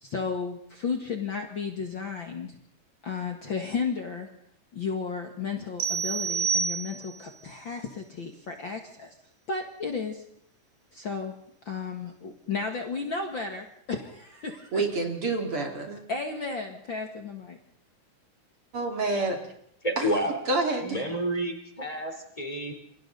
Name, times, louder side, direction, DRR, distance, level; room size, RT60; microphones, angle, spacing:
voice 1, 0.0-2.6 3.0-4.3 4.7-9.2 9.5-10.2 10.9-11.4 11.7-14.8 16.1-17.6, left 5 dB, 45° left, 3 dB, 2.1 m, -33 dB
sound 1, 5.8-7.3, right 6 dB, 85° right, 3.1 m, -28 dB
voice 2, 14.7-16.0 18.7-19.4 20.0-20.1 20.5-20.9, right 3 dB, 45° right, 3 dB, 3.2 m, -28 dB
voice 3, 19.8-20.4 20.8-22.7, right 1 dB, 10° left, 4 dB, 3.5 m, -29 dB
28.5 x 23.5 x 3.9 m, 0.69 s
omnidirectional pair, 3.7 m